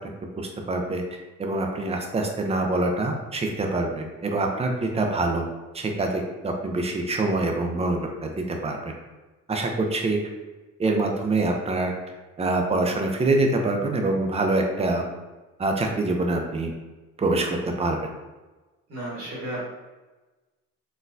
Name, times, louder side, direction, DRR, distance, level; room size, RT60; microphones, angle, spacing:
voice 1, 0.4-1.0 1.4-5.4 5.7-8.9 9.5-10.2 10.8-11.9 12.4-15.0 15.6-16.7 17.2-18.0, right 2 dB, 20° right, 2 dB, 0.5 m, -25 dB
voice 2, 18.9-19.7, right 1 dB, 50° right, -9 dB, 1.3 m, -33 dB
4.1 x 2.2 x 2.6 m, 1.2 s
cardioid pair, 90°, 30 cm